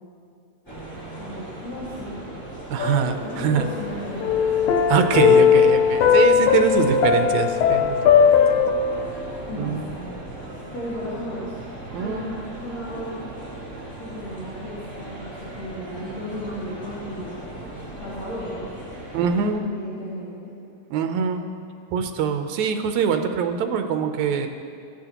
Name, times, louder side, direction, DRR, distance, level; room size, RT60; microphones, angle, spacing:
sound 1, 0.7-19.5, right 1 dB, 10° left, 2.1 m, -37 dB
voice 1, 1.2-2.2 3.2-4.6 5.1-5.2 5.8-6.0 6.5-6.7 9.5-11.5 12.0-13.2 14.0-17.7 18.0-18.7 19.3-20.6, equal, 65° left, -11 dB, 3.7 m, -35 dB
voice 2, 2.7-3.7 4.9-8.6 9.6-9.9 11.9-12.3 19.1-19.7 20.9-21.4 21.9-24.5, right 7 dB, 80° right, 7 dB, 2.0 m, -23 dB
sound 2, 2.8-3.9 4.2-8.7, left 7 dB, 85° left, 2.1 m, -18 dB
16.0 x 11.0 x 2.9 m, 2.4 s
omnidirectional pair, 3.4 m